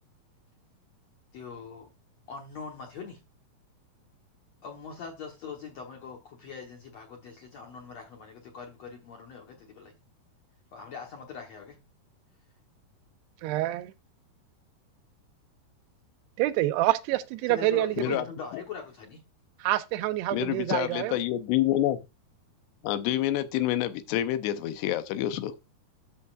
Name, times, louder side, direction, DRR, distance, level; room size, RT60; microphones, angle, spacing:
voice 1, 1.3-1.9 2.3-3.2 4.6-9.9 10.7-11.8 17.5-19.2, left 5 dB, 70° left, 1.6 m, -42 dB
voice 2, 13.4-13.9 16.4-18.2 19.6-21.2, right 16 dB, 85° right, 2.7 m, -27 dB
voice 3, 20.3-22.0 22.8-25.5, left 13 dB, 90° left, 2.9 m, -27 dB
12.5 x 5.5 x 2.4 m
omnidirectional pair, 4.7 m